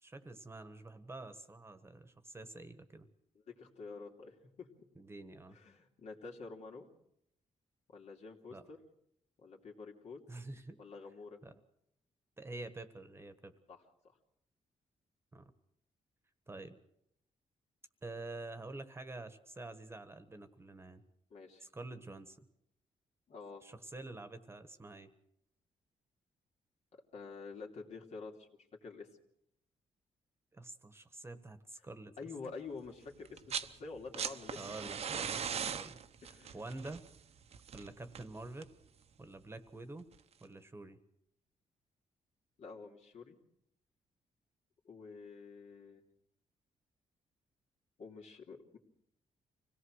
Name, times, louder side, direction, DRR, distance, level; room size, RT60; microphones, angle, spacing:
voice 1, 0.0-3.1 5.0-5.6 8.5-8.7 10.3-10.8 11.4-11.5 12.4-13.5 15.3-15.5 16.5-16.8 18.0-21.0 21.6-22.4 23.6-25.1 30.5-32.1 34.5-35.4 35.7-36.0 36.5-37.0 37.7-38.7 39.2-40.1 40.4-41.0, right 2 dB, 20° right, 9 dB, 1.4 m, -47 dB
voice 2, 3.5-4.7 5.5-6.9 7.9-8.8 9.4-10.2 10.8-11.4 13.7-14.1 21.3-21.6 23.3-23.6 26.9-28.5 28.8-29.1 32.2-34.7 36.2-36.6 42.6-43.4 44.8-46.0 48.0-48.8, left 4 dB, 60° left, 1 dB, 2.9 m, -48 dB
sound 1, 33.2-33.7 34.0-38.9 40.1-40.2, right 7 dB, 55° right, 0.9 m, -40 dB
25.5 x 18.0 x 6.4 m, 0.76 s
cardioid pair, 115°, 13 cm